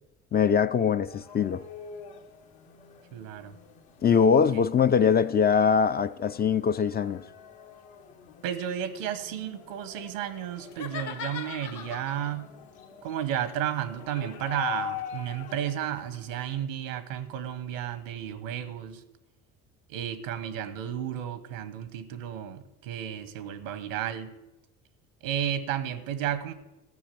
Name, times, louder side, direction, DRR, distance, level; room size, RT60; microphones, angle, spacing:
voice 1, 0.3-1.6 4.0-7.2, left 7 dB, 25° left, 0.4 m, -22 dB
sound 1, 1.1-16.6, left 9 dB, 70° left, 1.7 m, -45 dB
voice 2, 3.1-3.6 4.1-4.6 8.4-12.5 13.0-19.0 19.9-24.3 25.2-26.5, right 10 dB, 85° right, 1.1 m, -33 dB
sound 2, 10.7-12.4 13.3-16.4, left 8 dB, 50° left, 0.9 m, -41 dB
14.5 x 6.3 x 7.7 m
hypercardioid pair, 60°, 38 cm